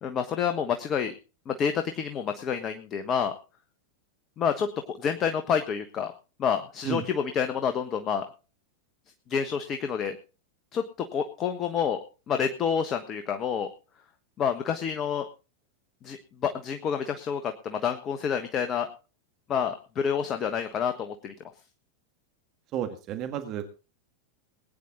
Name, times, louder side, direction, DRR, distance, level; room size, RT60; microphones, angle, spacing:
voice 1, 0.0-1.1 1.5-3.3 4.4-6.1 6.4-8.2 9.3-10.2 10.7-12.0 12.3-13.7 14.4-15.2 16.0-18.9 19.5-21.3, left 7 dB, 30° left, 8 dB, 1.3 m, -28 dB
voice 2, 22.7-23.7, right 9 dB, 35° right, 7 dB, 1.7 m, -32 dB
20.5 x 9.5 x 3.8 m, 0.33 s
figure-of-eight pair, 90°, 0 cm